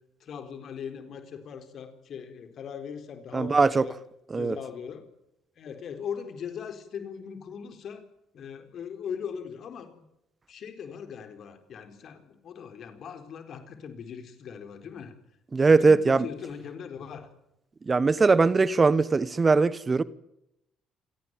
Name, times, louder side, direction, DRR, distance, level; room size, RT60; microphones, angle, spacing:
voice 1, 0.2-4.0 4.4-5.1 5.6-8.0 8.3-10.0 10.5-15.1 15.6-17.3, left 7 dB, 55° left, 4.1 m, -39 dB
voice 2, 3.3-3.9 4.3-4.6 15.5-16.3 17.9-20.0, right 4 dB, 30° right, 1.1 m, -21 dB
27.0 x 18.5 x 9.2 m
figure-of-eight pair, 45°, 0 cm